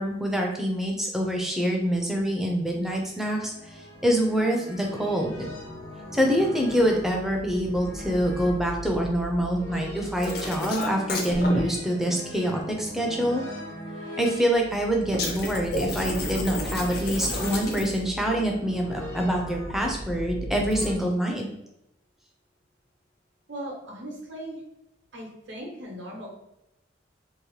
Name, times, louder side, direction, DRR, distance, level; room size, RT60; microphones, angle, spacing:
voice 1, 0.0-5.5 6.1-13.4 14.2-21.5, equal, ahead, 0 dB, 0.4 m, -25 dB
sound 1, 2.8-21.0, equal, 90° left, 1.0 m, -39 dB
sound 2, 10.2-11.6 15.1-18.1 20.6-20.9, left 2 dB, 50° left, 0.5 m, -31 dB
voice 2, 23.5-24.6 25.1-26.3, right 1 dB, 75° right, -1 dB, 0.8 m, -38 dB
2.8 x 2.0 x 3.1 m, 0.86 s
head